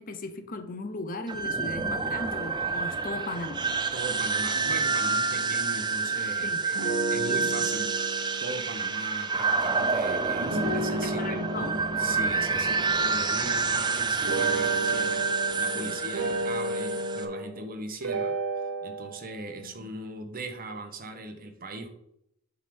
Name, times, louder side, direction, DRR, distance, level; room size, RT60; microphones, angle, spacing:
voice 1, 0.0-3.6 6.4-6.6 7.2-7.5 11.0-11.8 15.7-16.0 19.6-19.9, left 2 dB, 45° left, 8 dB, 0.8 m, -37 dB
sound 1, 1.3-17.2, right 4 dB, 20° right, 0.6 m, -28 dB
voice 2, 3.9-18.3 18.8-21.9, right 2 dB, 45° right, 5 dB, 1.1 m, -39 dB
sound 2, 4.5-6.4 6.7-9.2 10.4-13.8 14.2-17.7 18.0-19.3, right 2 dB, 75° right, 1.0 m, -33 dB
8.2 x 3.7 x 5.2 m, 0.77 s
head